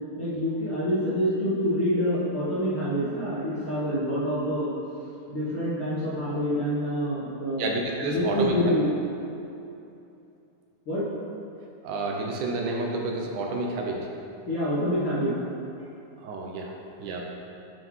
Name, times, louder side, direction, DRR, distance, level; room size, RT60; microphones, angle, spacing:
voice 1, 0.2-4.7 5.3-7.7 8.0-8.8 10.9-11.0 14.4-15.3 16.6-16.7, equal, 55° left, -10 dB, 1.6 m, -27 dB
voice 2, 7.6-8.5 11.8-14.0 16.2-16.7 17.0-17.3, right 3 dB, 80° right, 0 dB, 2.0 m, -29 dB
7.5 x 5.5 x 3.1 m, 2.7 s
omnidirectional pair, 3.7 m